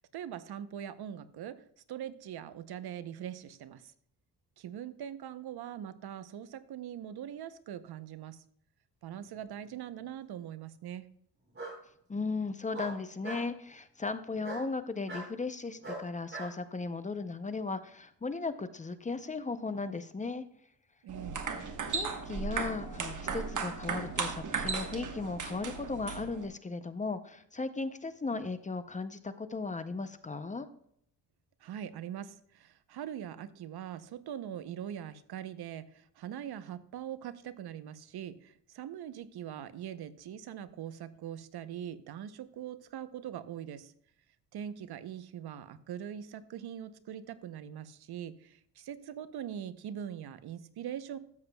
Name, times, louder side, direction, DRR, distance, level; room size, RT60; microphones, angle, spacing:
voice 1, 0.0-3.9 4.6-8.4 9.0-11.1 21.0-21.4 31.6-43.9 44.5-51.2, right 10 dB, 65° right, 13 dB, 0.7 m, -42 dB
Bark, 9.4-10.0 11.5-11.8 12.7-13.5 14.4-14.7 15.1-15.3 15.8-16.5, right 2 dB, 30° right, 4.0 m, -41 dB
voice 2, 12.1-20.4 21.9-30.7, left 3 dB, 20° left, 11 dB, 0.5 m, -36 dB
sound 1, 21.1-26.5, right 5 dB, 45° right, 1.3 m, -36 dB
13.0 x 7.8 x 2.2 m, 0.66 s
cardioid pair, 130°, 41 cm